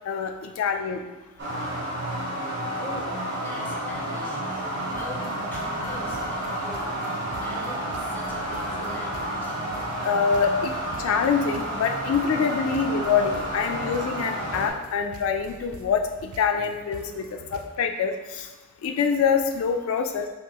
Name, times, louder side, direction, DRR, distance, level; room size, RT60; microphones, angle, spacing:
voice 1, 0.1-1.1 10.0-10.7 11.0-18.5 18.8-20.3, left 6 dB, 70° left, 6 dB, 0.3 m, -25 dB
voice 2, 1.3-1.7 2.8-9.6, left 1 dB, 10° left, -2 dB, 0.6 m, -43 dB
sound 1, 1.4-14.7, right 1 dB, 50° right, 1.0 m, -30 dB
sound 2, 5.0-17.7, right 3 dB, 75° right, 0.4 m, -45 dB
5.4 x 2.8 x 2.8 m, 1.1 s
head